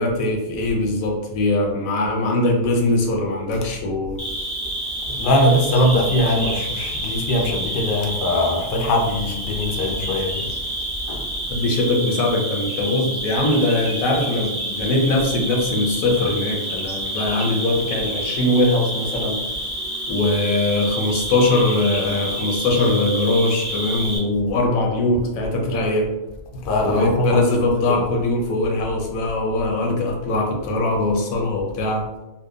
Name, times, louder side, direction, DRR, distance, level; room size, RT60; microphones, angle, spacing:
voice 1, 0.0-4.2 11.5-19.4 20.1-26.1 26.8-32.0, left 2 dB, 85° left, 1 dB, 1.0 m, -21 dB
Cricket, 4.2-24.2, right 1 dB, 5° left, 0.6 m, -29 dB
voice 2, 5.1-10.5 11.1-11.3 26.6-28.1, left 1 dB, 65° left, 1 dB, 0.5 m, -21 dB
2.8 x 2.0 x 2.3 m, 0.98 s
omnidirectional pair, 1.4 m